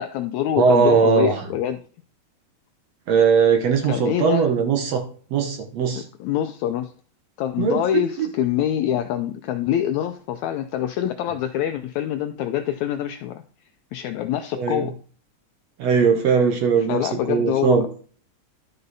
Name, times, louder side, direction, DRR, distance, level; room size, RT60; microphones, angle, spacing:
voice 1, 0.0-1.8 3.9-4.5 6.0-6.9 7.4-13.4 13.9-14.9 16.9-17.9, left 10 dB, 80° left, 1.6 m, -25 dB
voice 2, 0.6-1.4 3.1-6.0 7.6-8.3 14.6-14.9 15.8-17.9, right 6 dB, 65° right, 1.8 m, -20 dB
12.0 x 5.5 x 4.0 m
omnidirectional pair, 3.8 m